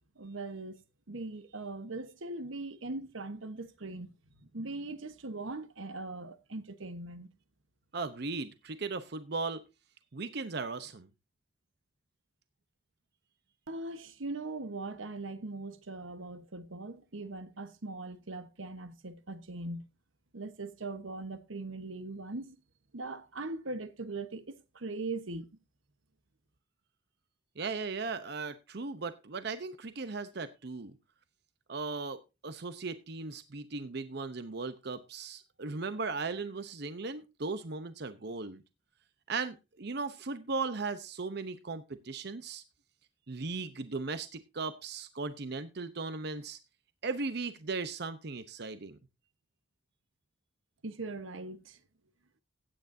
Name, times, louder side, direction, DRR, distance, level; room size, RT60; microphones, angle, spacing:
voice 1, 0.2-0.8 1.1-4.1 4.5-7.3 13.7-19.9 20.3-22.6 22.9-25.5 50.8-51.8, right 2 dB, 90° right, 1.2 m, -40 dB
voice 2, 7.9-9.6 10.1-11.1 27.6-31.0 31.7-38.6 39.3-42.6 43.3-46.6 47.0-49.0, right 4 dB, 55° right, 0.8 m, -37 dB
16.0 x 9.2 x 2.7 m
head